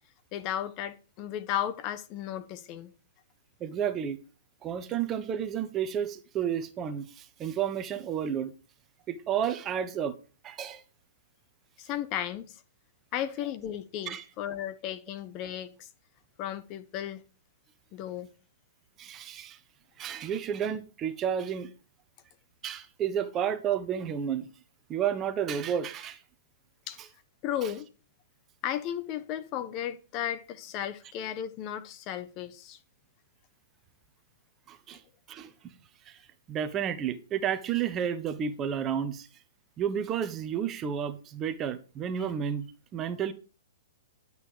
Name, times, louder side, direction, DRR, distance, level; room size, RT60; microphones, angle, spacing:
voice 1, 0.3-2.9 11.8-12.6 13.1-15.9 16.4-17.2 17.9-18.3 26.9-27.0 27.4-27.9 28.6-32.8, left 11 dB, 35° left, 1.2 m, -34 dB
voice 2, 3.6-4.2 4.6-8.5 9.1-10.1 10.4-10.8 14.1-14.2 19.0-19.6 20.0-21.7 22.6-24.5 24.9-26.2 27.6-27.7 34.7-35.0 35.3-35.5 36.1-36.2 36.5-39.3 39.8-43.3, right 8 dB, 25° right, 1.1 m, -31 dB
11.5 x 8.1 x 5.1 m
hypercardioid pair, 135°, 0 cm